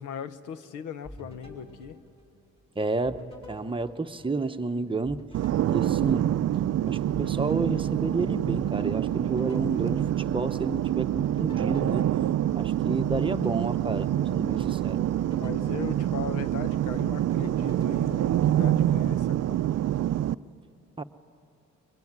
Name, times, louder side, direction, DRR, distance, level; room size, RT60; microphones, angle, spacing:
voice 1, 0.0-2.0 15.4-19.6, left 7 dB, 90° left, 12 dB, 1.1 m, -38 dB
sound 1, 1.0-2.7 3.0-4.7 5.0-8.7 9.1-10.7 11.1-14.6 15.0-16.7 17.0-19.0, left 1 dB, 20° left, 6.9 m, -48 dB
voice 2, 2.8-3.2 3.5-5.2 5.7-6.3 6.9-12.1 12.5-15.0 21.0-21.1, right 3 dB, 15° right, 8 dB, 0.9 m, -30 dB
sound 2, 5.3-20.3, right 12 dB, 55° right, 0.5 m, -26 dB
23.0 x 22.5 x 9.6 m, 2.5 s
cardioid pair, 90°, 30 cm